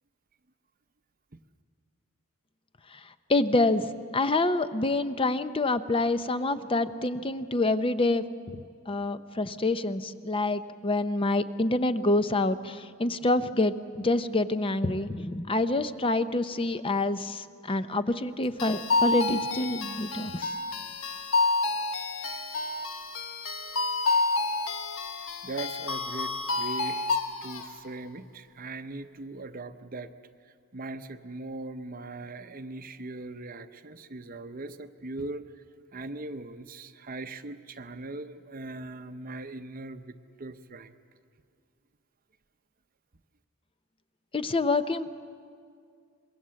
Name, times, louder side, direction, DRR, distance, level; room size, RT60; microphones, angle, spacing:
voice 1, 2.9-8.2 8.5-20.5 44.3-45.1, left 2 dB, 25° left, 12 dB, 0.7 m, -27 dB
sound 1, 18.6-27.7, left 3 dB, 70° left, 1.3 m, -29 dB
voice 2, 25.2-27.2 27.4-30.1 30.7-35.6 35.9-41.0, right 2 dB, 40° right, 10 dB, 0.8 m, -40 dB
25.5 x 22.0 x 7.6 m, 2.3 s
head